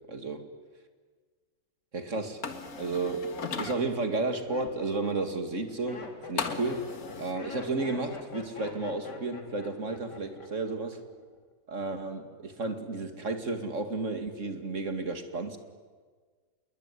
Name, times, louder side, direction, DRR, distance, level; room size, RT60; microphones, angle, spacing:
voice 1, 0.1-0.4 1.9-2.4 2.8-11.0 11.7-15.6, right 3 dB, 45° right, 8 dB, 2.6 m, -32 dB
sound 1, 2.4-3.7 6.4-7.3, left 5 dB, 55° left, 2.2 m, -36 dB
Laughter, 4.3-10.7 11.0-11.5, left 3 dB, 70° left, 3.8 m, -44 dB
27.5 x 22.0 x 9.8 m, 1.5 s
omnidirectional pair, 1.9 m